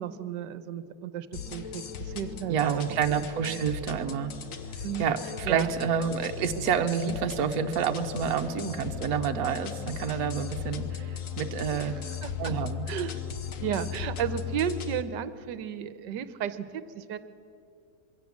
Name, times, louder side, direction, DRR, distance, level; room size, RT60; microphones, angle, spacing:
voice 1, 0.0-2.8 3.1-3.6 4.8-5.1 5.4-5.7 11.7-11.9 12.2-12.5 12.9-13.2 13.6-17.2, right 9 dB, 80° right, 13 dB, 1.5 m, -34 dB
space adventure, 1.3-15.0, left 7 dB, 55° left, 1.2 m, -37 dB
voice 2, 2.5-4.3 5.0-12.0 12.4-12.9, right 7 dB, 60° right, 6 dB, 1.3 m, -29 dB
23.0 x 16.0 x 7.3 m, 2.5 s
omnidirectional pair, 1.9 m